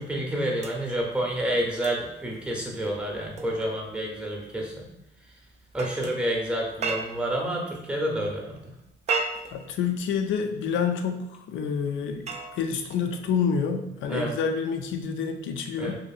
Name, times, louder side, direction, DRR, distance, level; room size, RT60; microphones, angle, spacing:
voice 1, 0.0-4.9 5.7-8.6 14.1-14.3 15.8-16.0, right 1 dB, 5° right, -1 dB, 0.7 m, -29 dB
sound 1, 0.6-7.5 8.8-10.4 11.8-13.3 14.9-15.1, right 4 dB, 35° right, 0.3 m, -37 dB
voice 2, 9.5-11.2 11.5-12.3 12.5-16.0, left 6 dB, 75° left, 5 dB, 0.4 m, -28 dB
2.7 x 2.5 x 2.3 m, 0.88 s
cardioid pair, 90°, 20 cm